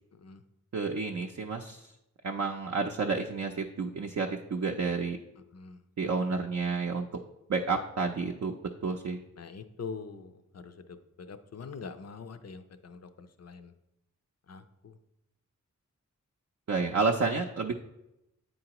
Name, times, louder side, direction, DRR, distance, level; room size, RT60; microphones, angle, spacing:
voice 1, 0.7-1.9 2.2-5.2 6.0-7.1 7.5-8.5 8.8-9.2 16.7-17.7, right 4 dB, 55° right, 2 dB, 0.5 m, -30 dB
voice 2, 9.4-13.7 14.5-15.0, left 5 dB, 55° left, 10 dB, 0.5 m, -44 dB
8.8 x 3.9 x 2.9 m, 0.89 s
cardioid pair, 40°, 32 cm